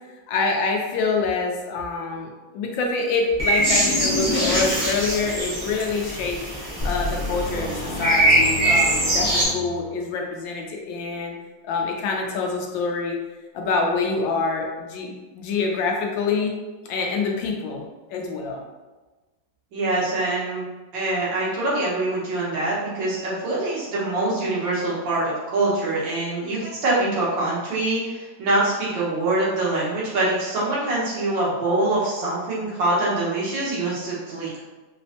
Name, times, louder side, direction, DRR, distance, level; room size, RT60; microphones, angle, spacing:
voice 1, 0.3-6.4 6.8-11.3 11.6-13.2 13.5-16.6 16.8-18.6, left 4 dB, 90° left, 1 dB, 1.4 m, -26 dB
sound 1, 3.4-9.4, right 1 dB, 25° right, 0.9 m, -22 dB
sound 2, 6.8-10.1, left 1 dB, 50° left, 0.5 m, -31 dB
voice 2, 19.7-20.6 20.9-34.6, right 2 dB, 85° right, -7 dB, 1.9 m, -24 dB
4.3 x 2.1 x 2.7 m, 1.2 s
omnidirectional pair, 2.0 m